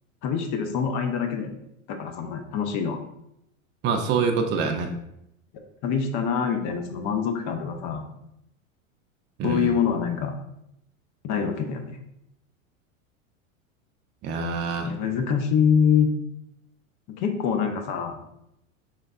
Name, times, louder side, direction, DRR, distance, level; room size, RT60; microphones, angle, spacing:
voice 1, 0.2-1.6 1.9-3.0 5.5-8.1 9.4-10.4 11.2-12.0 14.8-16.1 17.1-18.2, left 7 dB, 45° left, 5 dB, 0.5 m, -25 dB
voice 2, 3.8-4.9 9.4-9.7 14.2-14.9, right 5 dB, 30° right, 3 dB, 0.4 m, -25 dB
4.2 x 3.2 x 2.3 m, 0.81 s
hypercardioid pair, 95°, 41 cm